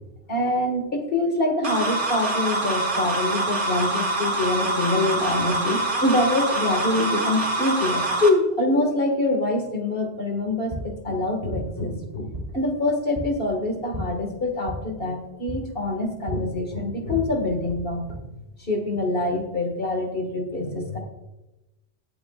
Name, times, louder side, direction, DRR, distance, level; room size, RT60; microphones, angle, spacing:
voice 1, 0.3-18.1 18.6-21.0, left 2 dB, 55° left, 3 dB, 1.9 m, -25 dB
sound 1, 1.6-8.3, right 2 dB, 45° right, 1.5 m, -25 dB
sound 2, 10.4-18.1, equal, 30° right, 4.2 m, -37 dB
21.5 x 7.9 x 2.4 m, 0.99 s
omnidirectional pair, 1.2 m